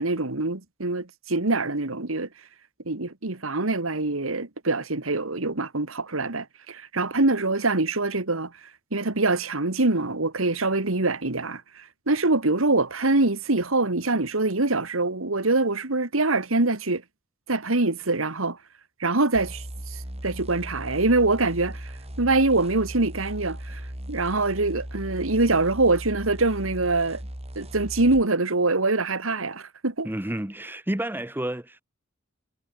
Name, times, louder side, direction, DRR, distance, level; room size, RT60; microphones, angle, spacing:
voice 1, 0.0-2.3 2.9-8.5 8.9-17.0 17.5-18.6 19.0-23.8 24.1-27.2 27.6-30.1, right 2 dB, 80° right, 2.1 m, -24 dB
sound 1, 19.3-28.3, equal, 30° right, 3.5 m, -38 dB
voice 2, 30.0-31.8, right 1 dB, 10° right, 1.1 m, -30 dB
head